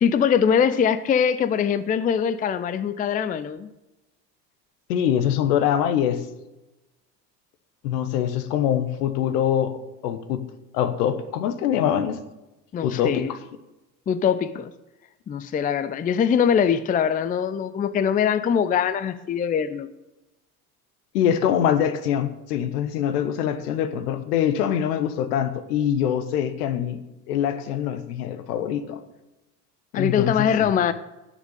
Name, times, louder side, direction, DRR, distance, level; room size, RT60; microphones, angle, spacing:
voice 1, 0.0-3.7 12.7-13.3 14.1-14.7 15.3-19.9 29.9-30.9, left 7 dB, 20° left, 14 dB, 0.5 m, -22 dB
voice 2, 4.9-6.2 7.8-10.4 10.7-12.2 12.8-13.4 21.1-27.0 27.3-29.0 29.9-30.7, left 9 dB, 65° left, 11 dB, 1.3 m, -24 dB
10.5 x 7.2 x 8.7 m, 1.0 s
figure-of-eight pair, 70°, 49 cm